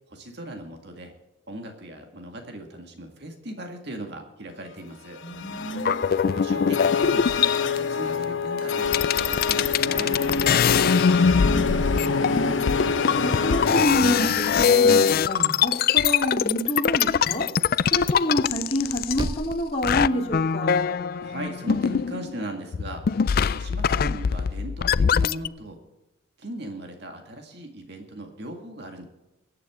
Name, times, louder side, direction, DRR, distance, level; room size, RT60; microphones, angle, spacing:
voice 1, 0.1-1.1 1.5-5.2 6.3-7.3 7.6-10.1 21.2-23.1 23.5-25.8 26.4-29.0, right 1 dB, 55° right, 4 dB, 1.9 m, -38 dB
sound 1, 5.2-13.9, left 5 dB, 70° left, 1.0 m, -26 dB
voice 2, 5.2-6.0 10.7-20.7, equal, 30° left, -2 dB, 3.3 m, -29 dB
sound 2, 5.8-7.8 8.6-8.7 8.9-19.5 19.8-22.4 22.7-25.5, left 7 dB, 45° left, 0.3 m, -23 dB
sound 3, 13.8-14.9 15.3-16.4 16.7-16.8 17.1-17.3 17.6-17.7 18.0-20.6, right 2 dB, 20° right, 0.5 m, -39 dB
22.5 x 9.0 x 3.7 m, 0.99 s
head